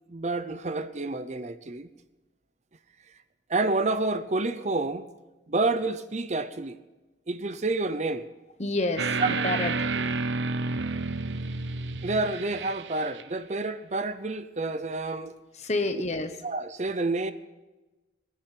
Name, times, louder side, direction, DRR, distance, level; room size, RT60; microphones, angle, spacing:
voice 1, 0.1-1.9 3.5-5.1 5.5-6.8 7.3-8.2 9.2-9.3 12.0-15.3 15.9-16.0 16.4-17.3, right 2 dB, 40° right, 0.6 m, -29 dB
voice 2, 8.6-9.9 15.5-16.3, left 2 dB, 35° left, 1.1 m, -29 dB
sound 1, 9.0-13.2, right 3 dB, 80° right, 0.7 m, -30 dB
21.0 x 10.5 x 5.9 m
head